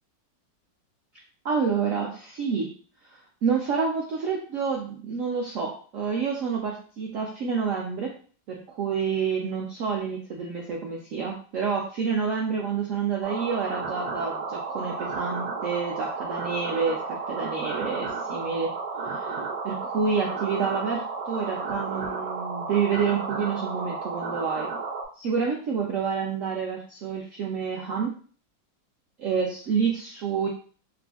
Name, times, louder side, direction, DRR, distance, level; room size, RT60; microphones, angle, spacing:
voice 1, 1.4-2.7 3.1-8.1 8.5-18.7 19.1-19.4 19.6-24.7 25.2-28.1 29.2-30.5, right 6 dB, 85° right, -1 dB, 0.7 m, -28 dB
sound 1, 13.2-25.1, right 4 dB, 65° right, 1.0 m, -33 dB
4.8 x 2.4 x 2.4 m, 0.42 s
omnidirectional pair, 2.1 m